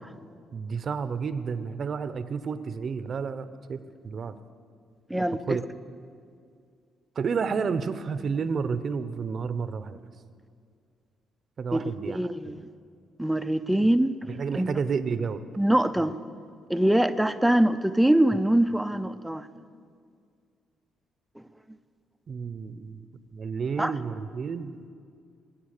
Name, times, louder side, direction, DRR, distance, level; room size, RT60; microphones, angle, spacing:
voice 1, 0.5-4.4 5.5-5.6 7.2-10.0 11.6-12.2 14.3-15.4 22.3-23.1 23.3-24.7, right 5 dB, 50° right, 13 dB, 0.8 m, -30 dB
voice 2, 5.1-5.4 11.7-12.7 13.2-14.2 14.6-14.7 15.6-16.1 16.7-19.5 23.8-23.9, right 1 dB, 5° right, 11 dB, 0.6 m, -23 dB
20.5 x 8.1 x 6.7 m, 2.2 s
cardioid pair, 90°, 0 cm